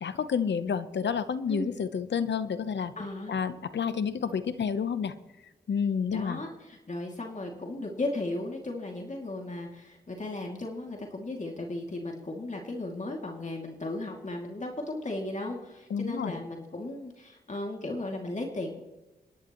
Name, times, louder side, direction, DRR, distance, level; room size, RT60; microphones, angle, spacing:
voice 1, 0.0-2.9 3.3-5.1 5.7-6.4 15.9-16.3, left 6 dB, 85° left, 12 dB, 0.9 m, -29 dB
voice 2, 3.0-3.4 6.1-18.8, left 2 dB, 45° left, 0 dB, 2.5 m, -36 dB
29.0 x 11.0 x 3.1 m, 1.1 s
cardioid pair, 60°, 18 cm